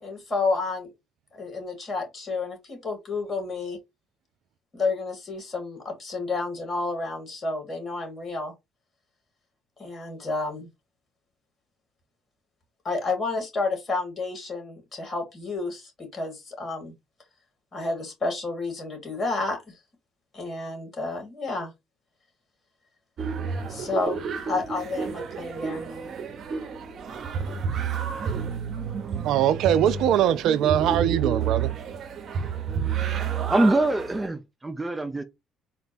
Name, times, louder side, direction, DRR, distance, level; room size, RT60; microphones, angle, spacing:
voice 1, 0.0-0.9 1.3-3.8 4.7-8.5 9.8-10.7 12.8-16.9 17.7-19.7 20.3-21.7 23.7-24.2 24.5-25.9, left 3 dB, 40° left, 2.6 m, -30 dB
sound 1, 23.2-34.3, right 6 dB, 55° right, 0.8 m, -30 dB
voice 2, 29.1-31.7, right 11 dB, 70° right, 0.4 m, -22 dB
voice 3, 33.5-35.2, right 2 dB, 15° right, 0.6 m, -24 dB
4.3 x 2.2 x 4.2 m
supercardioid pair, 65°, 0 cm